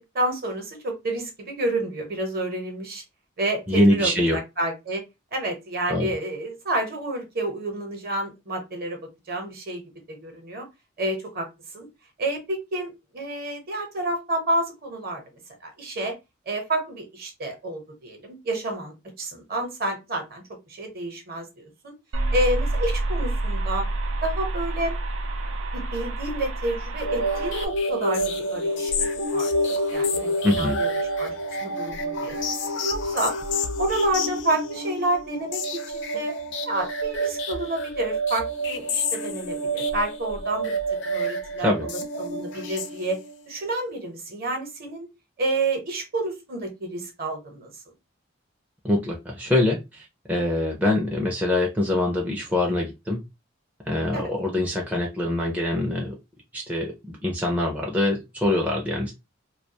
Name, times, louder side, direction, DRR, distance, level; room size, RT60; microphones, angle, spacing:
voice 1, 0.1-3.0 3.4-5.0 5.3-9.0 9.3-9.8 10.1-10.7 11.0-11.5 11.7-11.9 12.2-15.2 15.6-16.1 16.5-20.4 20.7-21.9 22.3-23.9 24.2-25.0 25.7-31.3 31.6-32.4 32.6-33.3 33.8-36.3 36.7-40.7 41.0-43.2 43.5-45.1 45.4-47.7 54.1-54.3, right 1 dB, 45° right, 4 dB, 0.8 m, -29 dB
voice 2, 3.7-4.4 5.9-6.1 30.4-30.8 41.6-41.9 48.8-49.8 50.3-53.2 53.9-56.2 56.5-59.1, left 1 dB, 5° right, -1 dB, 0.4 m, -24 dB
sound 1, 22.1-27.7, right 2 dB, 75° right, 0.4 m, -28 dB
sound 2, 27.0-43.4, equal, 60° left, 0.4 m, -28 dB
2.3 x 2.2 x 2.6 m, 0.23 s
head